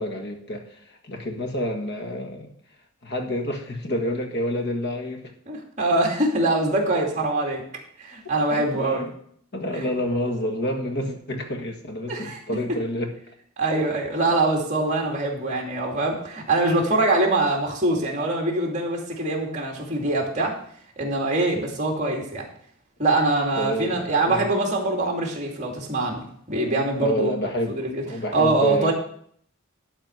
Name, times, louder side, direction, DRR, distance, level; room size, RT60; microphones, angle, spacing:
voice 1, 0.0-2.5 3.0-5.3 8.5-9.1 9.5-13.2 23.6-24.5 27.0-28.9, left 1 dB, 50° left, 3 dB, 1.7 m, -28 dB
voice 2, 5.5-7.6 8.0-9.0 9.7-9.9 12.1-12.4 13.6-20.6 21.0-22.4 23.0-27.3 27.7-28.0 28.3-28.9, right 2 dB, 35° right, 0 dB, 2.5 m, -23 dB
12.0 x 4.4 x 8.0 m, 0.64 s
head